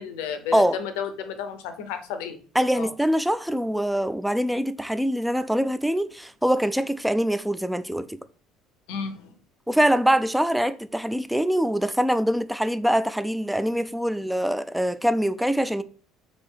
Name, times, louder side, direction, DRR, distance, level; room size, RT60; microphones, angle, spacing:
voice 1, 0.0-2.4 2.7-2.9 8.9-9.3, left 7 dB, 70° left, 0.6 m, -32 dB
voice 2, 2.5-8.2 9.7-15.8, equal, 5° right, 0.3 m, -24 dB
3.4 x 2.8 x 4.4 m
hypercardioid pair, 60°, 0 cm